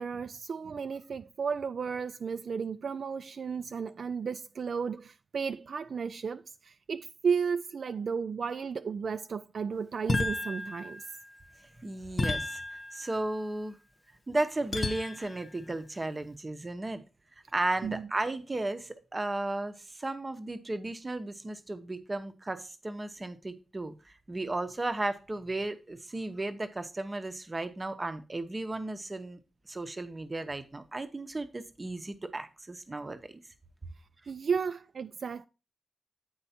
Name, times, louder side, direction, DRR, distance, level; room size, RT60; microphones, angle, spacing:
voice 1, 0.0-11.0 17.8-18.1 34.3-35.5, right 6 dB, 60° right, 0.3 m, -33 dB
sound 1, 10.1-11.4 12.2-13.4 14.7-15.5, left 3 dB, 35° left, 0.8 m, -33 dB
voice 2, 11.8-12.6 12.9-13.8 14.3-17.0 17.5-23.9 24.3-29.4 29.7-33.3, right 2 dB, 20° right, 0.8 m, -34 dB
9.1 x 4.5 x 4.2 m
wide cardioid pair, 155°, 0 cm